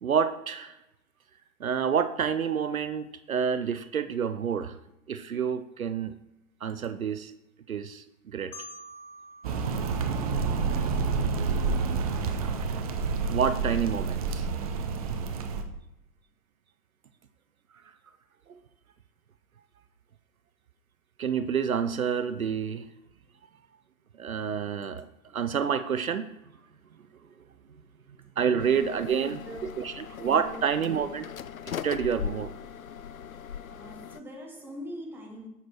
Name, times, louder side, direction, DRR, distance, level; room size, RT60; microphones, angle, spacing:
voice 1, 0.0-0.8 1.6-4.8 5.1-6.1 6.6-7.3 7.7-8.5 9.5-9.6 13.3-14.4 18.5-18.6 21.2-22.8 24.2-25.1 25.3-26.3 28.4-29.4 29.8-31.2 31.7-32.5, right 7 dB, 65° right, 0.7 m, -28 dB
Marimba xylophone, 8.5-11.4, equal, 10° left, 0.9 m, -48 dB
sound 1, 9.4-15.6, right 5 dB, 25° right, 0.7 m, -29 dB
sound 2, 28.6-34.2, left 8 dB, 65° left, 0.6 m, -39 dB
voice 2, 28.6-29.9 30.2-31.1 33.7-35.5, equal, 5° right, 1.2 m, -43 dB
10.0 x 7.4 x 4.4 m
figure-of-eight pair, 120°, 46 cm